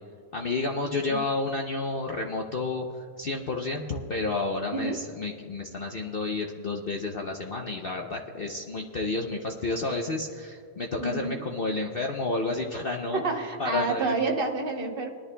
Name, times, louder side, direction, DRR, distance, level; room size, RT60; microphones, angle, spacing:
voice 1, 0.3-13.2 13.6-14.1, left 3 dB, 75° left, 1 dB, 0.5 m, -30 dB
voice 2, 11.0-11.4 13.1-15.1, right 3 dB, 35° right, 1 dB, 1.1 m, -29 dB
23.0 x 11.0 x 2.2 m, 2.3 s
omnidirectional pair, 1.9 m